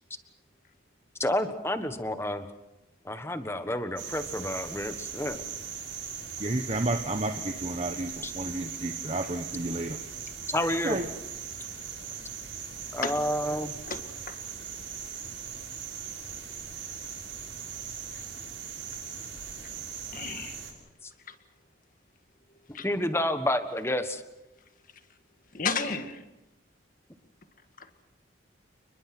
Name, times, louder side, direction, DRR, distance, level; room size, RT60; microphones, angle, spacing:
voice 1, 1.2-2.5 3.0-5.4 8.2-8.3 10.5-11.0 12.9-13.7 21.0-21.1 22.8-24.2, left 1 dB, 15° left, 9 dB, 1.3 m, -29 dB
sound 1, 4.0-20.7, right 7 dB, 90° right, 6.7 m, -39 dB
voice 2, 6.4-10.0 10.8-11.0, right 2 dB, 35° right, 5 dB, 1.2 m, -31 dB
voice 3, 20.1-20.6 21.3-21.4 22.7-22.8 25.5-26.2 27.8-28.0, left 5 dB, 45° left, 8 dB, 1.9 m, -32 dB
29.0 x 21.5 x 6.1 m, 0.94 s
head